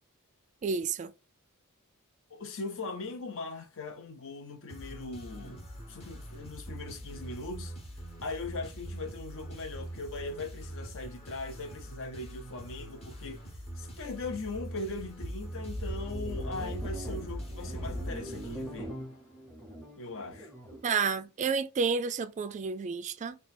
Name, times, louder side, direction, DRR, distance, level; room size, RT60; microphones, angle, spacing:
voice 1, 0.6-1.1 20.8-23.4, right 5 dB, 35° right, 0.3 m, -30 dB
voice 2, 2.3-7.7 8.2-13.4 13.8-18.9 20.0-20.5, left 3 dB, 60° left, 0.7 m, -40 dB
sound 1, 4.7-19.3, right 1 dB, 30° left, 1.0 m, -44 dB
sound 2, 15.2-20.8, equal, 5° left, 0.8 m, -39 dB
2.9 x 2.3 x 4.1 m
head